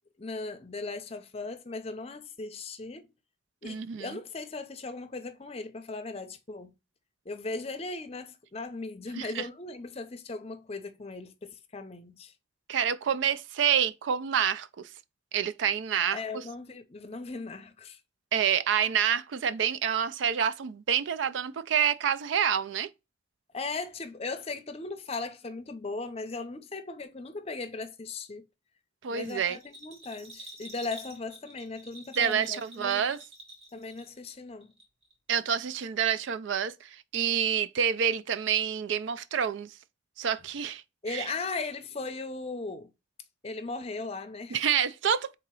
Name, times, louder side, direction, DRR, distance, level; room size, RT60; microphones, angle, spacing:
voice 1, 0.2-3.1 3.6-6.7 7.3-12.3 16.1-18.0 23.5-28.4 29.1-33.1 33.7-34.7 41.0-42.9 43.4-44.6, left 3 dB, 30° left, 0.6 m, -38 dB
voice 2, 3.6-4.2 9.2-9.5 12.7-14.9 15.3-16.4 18.3-22.9 29.0-29.6 32.2-33.2 35.3-39.7 40.2-41.3 44.5-45.3, right 8 dB, 75° right, 0.4 m, -28 dB
Bell, 29.2-34.3 34.6-35.4 35.7-35.8, right 1 dB, 30° right, 1.5 m, -48 dB
3.8 x 2.8 x 4.6 m
head